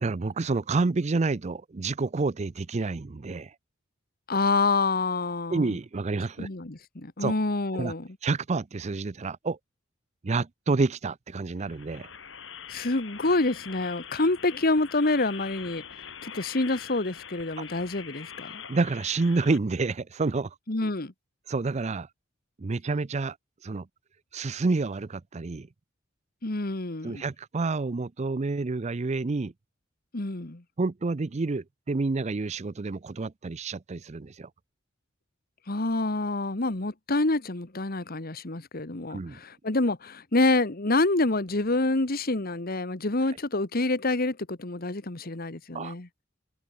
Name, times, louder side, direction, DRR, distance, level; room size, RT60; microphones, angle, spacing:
voice 1, 0.0-3.5 5.5-6.5 7.2-7.3 7.7-7.9 8.2-9.6 10.2-12.1 18.7-20.6 21.5-22.1 22.6-23.4 23.6-23.9 24.3-25.7 27.0-29.5 30.8-34.5 39.1-39.4 45.7-45.9, right 3 dB, 35° right, 0.5 m, -28 dB
voice 2, 4.3-5.8 6.4-8.1 12.7-15.8 16.2-18.6 20.7-21.1 26.4-27.2 30.1-30.6 35.7-46.1, left 2 dB, 50° left, 1.6 m, -27 dB
sound 1, 11.6-19.6, left 7 dB, 70° left, 5.7 m, -44 dB
head